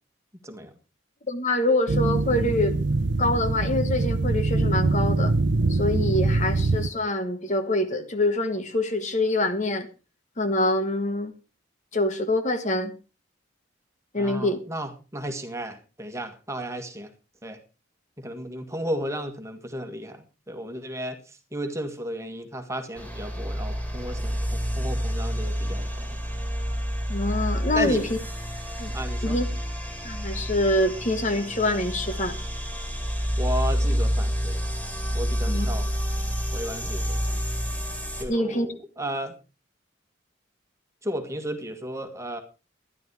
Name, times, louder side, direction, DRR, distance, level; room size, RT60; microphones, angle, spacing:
voice 1, 0.4-0.7 14.2-17.1 17.4-17.6 18.2-26.2 27.7-28.0 28.9-29.4 33.4-34.6 35.1-35.9 36.5-37.4 38.1-39.3 41.0-42.4, equal, 15° right, 6 dB, 1.8 m, -34 dB
voice 2, 1.3-2.8 3.2-5.3 5.7-9.9 10.4-11.3 11.9-12.9 14.1-14.6 27.1-28.2 28.8-28.9 29.2-29.5 30.0-32.3 35.5-35.7 38.3-38.7, left 1 dB, 40° left, 9 dB, 1.2 m, -25 dB
sound 1, 1.9-6.9, right 3 dB, 65° right, 0.7 m, -23 dB
sound 2, 23.0-38.2, equal, 10° left, 3.2 m, -28 dB
13.0 x 11.0 x 4.8 m, 0.32 s
head